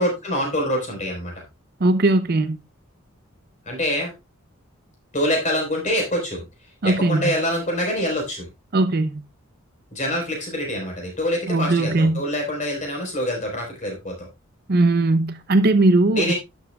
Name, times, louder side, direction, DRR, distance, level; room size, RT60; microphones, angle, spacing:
voice 1, 0.0-1.3 3.7-4.1 5.1-6.4 6.8-8.5 9.9-14.3 16.1-16.3, equal, 35° left, 4.3 m, -25 dB
voice 2, 1.8-2.6 6.8-7.3 8.7-9.2 11.5-12.2 14.7-16.3, right 2 dB, 45° right, 0.6 m, -19 dB
12.0 x 7.2 x 2.3 m
head